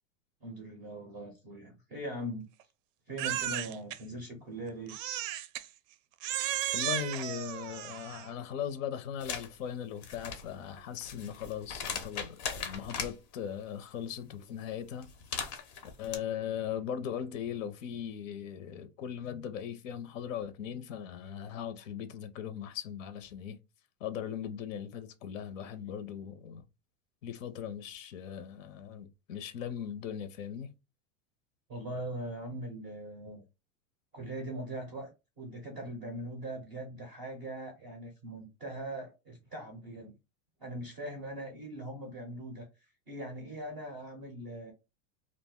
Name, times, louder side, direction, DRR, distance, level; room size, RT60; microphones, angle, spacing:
voice 1, 0.4-2.5 3.1-4.9 31.7-33.4 34.1-35.1 35.4-40.1 40.6-42.7 43.1-44.7, right 1 dB, 20° right, 0.4 m, -41 dB
Crying sobbing, 3.2-4.0 4.9-5.7 6.2-8.3, right 12 dB, 80° right, 0.5 m, -34 dB
voice 2, 6.7-15.1 16.0-23.6 24.0-26.6 27.2-30.7, left 9 dB, 80° left, 0.6 m, -39 dB
sound 1, 9.2-9.5 9.9-13.1 15.0-16.2, left 6 dB, 35° left, 0.5 m, -39 dB
2.5 x 2.1 x 3.5 m
supercardioid pair, 165°, 38 cm